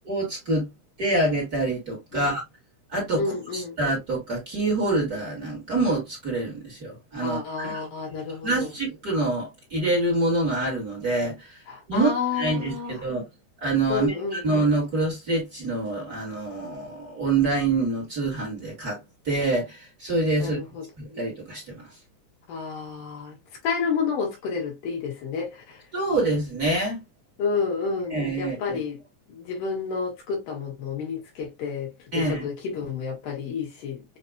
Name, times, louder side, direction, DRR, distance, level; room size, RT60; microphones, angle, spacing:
voice 1, 0.1-0.7 1.0-2.4 2.9-7.9 8.4-11.6 11.9-13.2 13.6-19.0 19.2-20.6 21.0-21.9 25.9-27.0 28.1-28.8 32.1-32.5, right 2 dB, 35° right, 2.0 m, -26 dB
voice 2, 3.2-3.8 7.2-8.7 11.7-13.0 13.9-14.4 20.4-20.9 22.5-23.4 23.6-25.8 27.4-29.0 29.3-34.0, left 5 dB, 85° left, 3.4 m, -30 dB
6.6 x 2.8 x 2.3 m
omnidirectional pair, 3.6 m